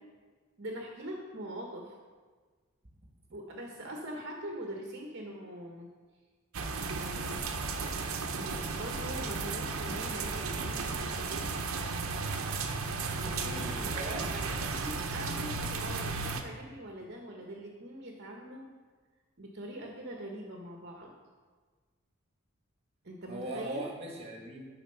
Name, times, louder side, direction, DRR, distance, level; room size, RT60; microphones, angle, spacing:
voice 1, 0.6-2.0 3.3-5.9 6.8-7.4 8.3-11.4 13.2-13.8 14.3-18.7 19.4-21.1 23.0-23.8, right 1 dB, 55° right, 0 dB, 1.0 m, -42 dB
sound 1, 6.5-16.4, right 4 dB, 85° right, 0.8 m, -34 dB
voice 2, 13.2-14.3 23.3-24.6, right 2 dB, 30° right, 0 dB, 1.6 m, -40 dB
11.0 x 4.3 x 5.6 m, 1.4 s
head